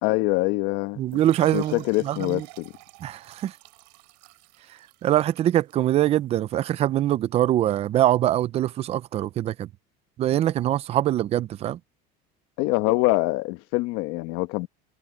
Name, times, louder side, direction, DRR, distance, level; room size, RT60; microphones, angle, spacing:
voice 1, 0.0-1.0 1.5-2.7 12.6-14.7, left 21 dB, 65° left, 1.2 m, -24 dB
voice 2, 1.0-2.5 3.0-3.5 5.0-9.7 10.2-11.8, right 13 dB, 30° right, 0.5 m, -23 dB
sound 1, 1.1-6.2, right 29 dB, 80° right, 2.9 m, -51 dB
cardioid pair, 155°, 21 cm